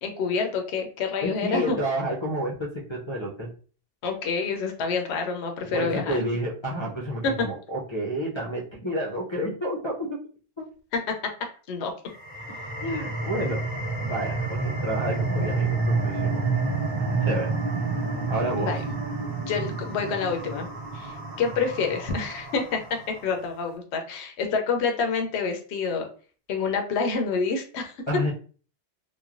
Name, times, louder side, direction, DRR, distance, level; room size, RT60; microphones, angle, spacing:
voice 1, 0.0-1.8 4.0-6.2 7.2-7.5 10.9-11.2 11.7-11.9 18.6-18.8 19.5-26.1 26.5-27.9, left 5 dB, 75° left, 3 dB, 0.9 m, -28 dB
voice 2, 1.2-3.5 5.7-9.9 12.8-13.6 14.0-16.4 17.2-17.5 18.3-18.7 28.1-28.3, equal, 35° left, -3 dB, 0.5 m, -29 dB
sound 1, 12.1-23.3, right 3 dB, 50° right, 1.0 m, -29 dB
3.0 x 2.2 x 2.4 m, 0.40 s
omnidirectional pair, 1.1 m